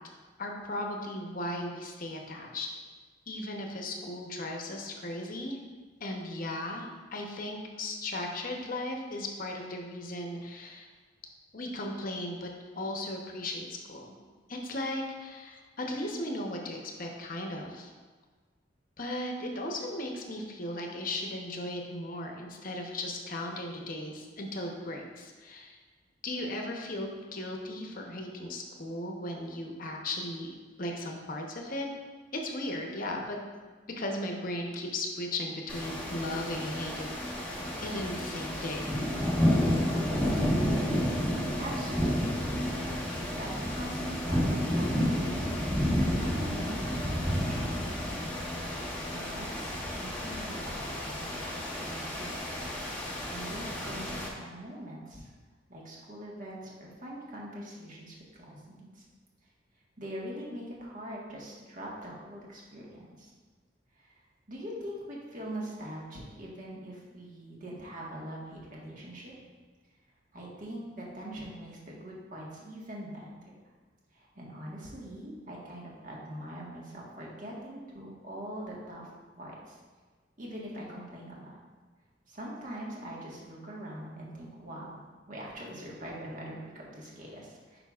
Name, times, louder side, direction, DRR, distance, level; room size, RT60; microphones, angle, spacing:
voice 1, 0.4-2.7 3.3-5.6 6.0-10.9 11.5-14.1 14.5-17.9 19.0-25.8 26.2-30.5 30.8-31.9 32.3-33.4 34.0-37.1 37.8-39.0, left 1 dB, 50° left, 1 dB, 0.9 m, -36 dB
sound 1, 35.7-54.3, equal, 10° left, 1.1 m, -31 dB
voice 2, 41.6-42.5 43.1-45.5 46.2-48.0 48.8-52.4 52.9-55.3 55.7-59.1 60.0-63.3 64.0-64.2 64.5-69.4 70.3-73.3 74.1-79.1 79.4-79.8 80.4-81.6 82.3-85.0 85.3-87.8, right 1 dB, 45° right, -4 dB, 1.5 m, -43 dB
9.2 x 5.4 x 2.4 m, 1.4 s
head